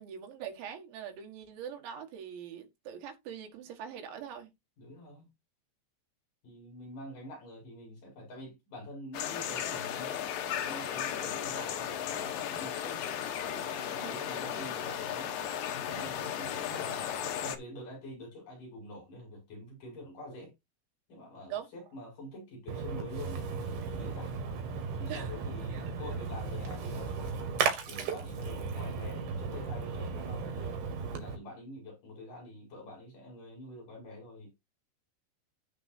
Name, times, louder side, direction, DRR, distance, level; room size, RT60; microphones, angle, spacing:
voice 1, 0.0-4.5 14.0-14.2 14.5-14.6 21.5-21.7 25.1-25.3, right 9 dB, 80° right, 3.9 m, -42 dB
voice 2, 4.8-5.3 6.4-10.3 10.6-13.0 13.4-15.3 15.9-17.1 17.4-20.5 21.1-24.4 25.0-27.4 27.9-30.8 31.1-34.5, left 1 dB, 45° left, 7.4 m, -46 dB
sound 1, 9.1-17.6, left 9 dB, 75° left, 2.0 m, -35 dB
Splash splatter, 22.7-31.3, right 5 dB, 60° right, 3.5 m, -35 dB
14.5 x 5.3 x 2.7 m
omnidirectional pair, 5.3 m